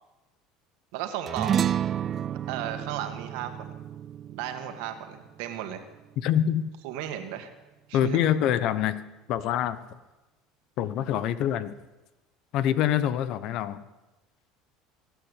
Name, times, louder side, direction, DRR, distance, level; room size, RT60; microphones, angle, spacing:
voice 1, 0.9-1.6 2.5-3.7 4.3-5.8 6.8-7.5 7.9-8.2, right 11 dB, 75° right, 7 dB, 2.0 m, -34 dB
sound 1, 1.3-5.9, right 9 dB, 35° right, 0.4 m, -31 dB
voice 2, 6.2-6.6 7.9-9.0 9.3-9.8 10.8-11.7 12.5-13.8, left 10 dB, 60° left, 14 dB, 1.0 m, -25 dB
18.5 x 9.4 x 8.3 m, 1.1 s
supercardioid pair, 115°, 0 cm